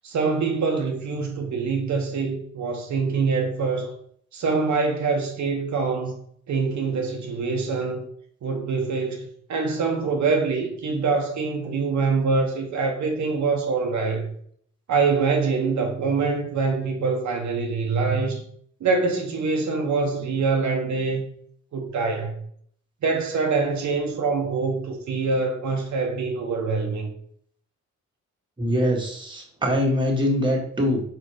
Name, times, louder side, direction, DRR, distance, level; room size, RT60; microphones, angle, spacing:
voice 1, 0.0-3.9 4.3-6.2 6.5-8.0 8.4-14.3 14.9-18.4 18.8-21.2 21.7-22.4 23.0-27.1, right 4 dB, 75° right, 1.0 m, -24 dB
voice 2, 28.6-31.0, equal, 15° right, 1.8 m, -23 dB
4.5 x 4.4 x 4.8 m
cardioid pair, 110°, 29 cm